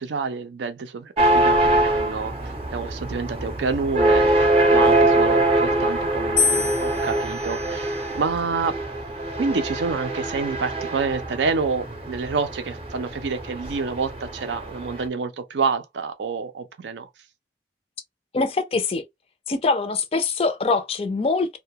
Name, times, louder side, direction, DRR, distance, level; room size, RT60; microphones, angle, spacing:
voice 1, 0.0-4.2 4.7-8.8 9.4-17.1, right 4 dB, 90° right, 0.5 m, -28 dB
sound 1, 1.2-15.1, right 1 dB, 35° right, 0.6 m, -23 dB
sound 2, 6.4-8.6 9.4-9.9, left 5 dB, 90° left, 0.7 m, -28 dB
voice 2, 18.3-19.0 19.5-21.6, left 3 dB, 35° left, 0.3 m, -23 dB
2.2 x 2.1 x 2.7 m
head